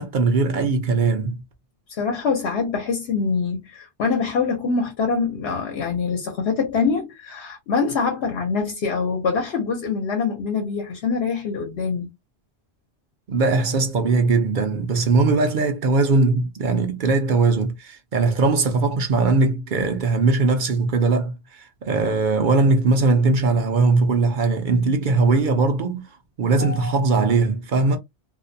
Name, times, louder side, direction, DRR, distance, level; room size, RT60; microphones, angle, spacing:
voice 1, 0.0-1.4 13.3-26.0 26.4-28.0, right 3 dB, 55° right, 0.6 m, -20 dB
voice 2, 1.9-12.1 26.6-26.9, left 5 dB, 65° left, 0.9 m, -24 dB
2.5 x 2.1 x 2.6 m
omnidirectional pair, 1.2 m